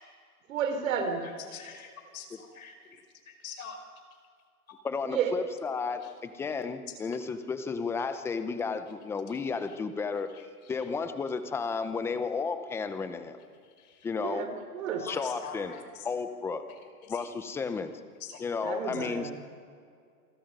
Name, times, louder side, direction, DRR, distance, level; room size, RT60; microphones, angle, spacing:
voice 1, 0.5-1.2 5.0-5.3 14.2-15.1 18.6-19.3, right 7 dB, 60° right, 6 dB, 3.5 m, -31 dB
voice 2, 1.5-2.7 3.4-3.8 15.1-15.8 18.2-18.4 18.7-18.8, left 6 dB, 65° left, 5 dB, 5.3 m, -43 dB
voice 3, 4.8-10.3 10.7-13.4 14.0-14.5 15.0-15.7 16.0-16.6 17.1-17.9 18.4-19.3, left 5 dB, 5° left, 10 dB, 0.6 m, -33 dB
28.0 x 22.0 x 5.4 m, 2.3 s
hypercardioid pair, 145°, 45 cm